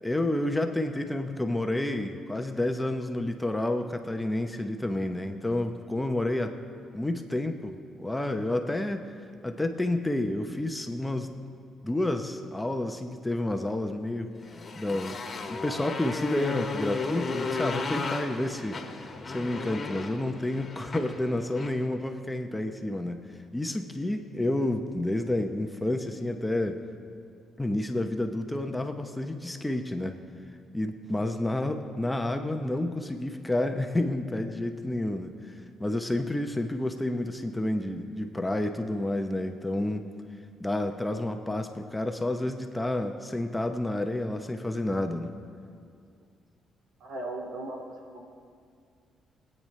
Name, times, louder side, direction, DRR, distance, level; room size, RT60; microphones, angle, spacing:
voice 1, 0.0-6.6 6.9-9.0 9.4-11.3 11.8-14.3 14.8-15.2 15.5-26.8 27.6-30.1 30.7-40.1 40.6-45.3, left 1 dB, 10° left, 5 dB, 0.8 m, -30 dB
Motorcycle, 14.4-21.8, left 4 dB, 40° left, 1.5 m, -35 dB
voice 2, 47.0-47.8 48.1-48.2, right 2 dB, 75° right, 0 dB, 2.3 m, -36 dB
24.5 x 8.9 x 3.2 m, 2.2 s
cardioid pair, 90°, 0 cm